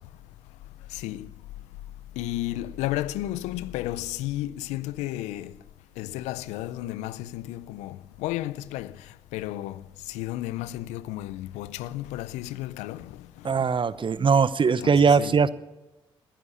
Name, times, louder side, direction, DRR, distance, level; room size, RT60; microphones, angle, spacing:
voice 1, 0.9-1.3 2.2-5.5 6.0-13.7 14.8-15.4, left 15 dB, 90° left, 0.5 m, -33 dB
voice 2, 13.4-15.5, right 5 dB, 45° right, 0.8 m, -20 dB
19.5 x 10.0 x 7.2 m
supercardioid pair, 45°, 11 cm